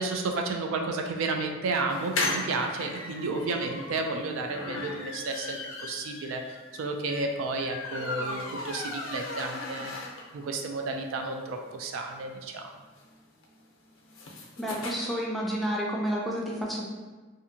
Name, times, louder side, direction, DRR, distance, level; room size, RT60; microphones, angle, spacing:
voice 1, 0.0-9.9 10.3-12.7, right 3 dB, 80° right, 3 dB, 0.3 m, -32 dB
sound 1, 1.9-10.5 10.9-11.0 11.2-11.3 11.5-14.9, left 2 dB, 90° left, 0.5 m, -36 dB
voice 2, 14.6-16.8, equal, ahead, -4 dB, 0.4 m, -30 dB
2.6 x 2.4 x 2.6 m, 1.3 s
head